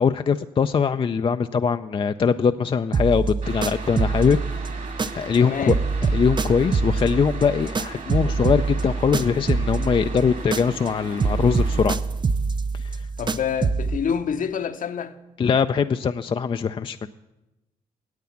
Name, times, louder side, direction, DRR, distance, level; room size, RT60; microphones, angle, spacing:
voice 1, 0.0-4.4 5.1-5.8 6.1-12.0 12.8-13.0 15.4-17.1, left 6 dB, 35° left, 0.4 m, -22 dB
sound 1, 2.9-5.4 5.7-10.9 11.2-14.0, right 4 dB, 30° right, 0.5 m, -25 dB
sound 2, 3.4-11.9, right 3 dB, 55° right, 2.5 m, -38 dB
voice 2, 5.4-5.8 13.2-15.1, left 7 dB, 55° left, 0.8 m, -27 dB
9.5 x 8.3 x 7.1 m
supercardioid pair, 55°, 16 cm